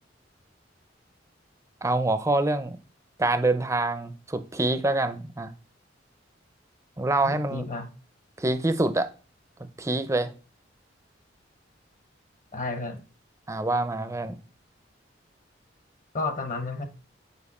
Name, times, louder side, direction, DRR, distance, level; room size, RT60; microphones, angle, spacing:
voice 1, 1.8-2.8 3.2-5.5 7.0-7.6 8.4-9.1 9.8-10.3 13.5-14.4, right 2 dB, 15° right, 0.5 m, -25 dB
voice 2, 7.2-7.9 12.5-13.0 16.1-16.9, left 3 dB, 45° left, 1.0 m, -31 dB
7.2 x 4.4 x 4.3 m
head